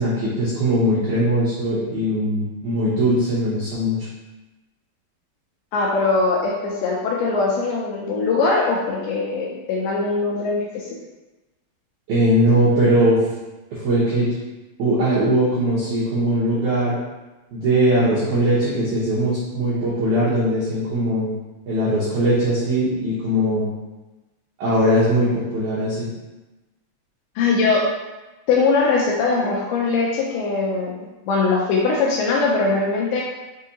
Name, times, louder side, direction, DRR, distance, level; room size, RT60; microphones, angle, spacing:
voice 1, 0.0-4.1 12.1-13.2 13.7-14.3 14.8-17.0 17.5-21.3 21.7-23.7 24.6-26.1, right 1 dB, 85° right, -9 dB, 1.7 m, -20 dB
voice 2, 5.7-11.0 27.4-27.9 28.5-33.2, left 3 dB, 85° left, -3 dB, 2.3 m, -21 dB
6.3 x 2.7 x 2.7 m, 1.1 s
omnidirectional pair, 4.8 m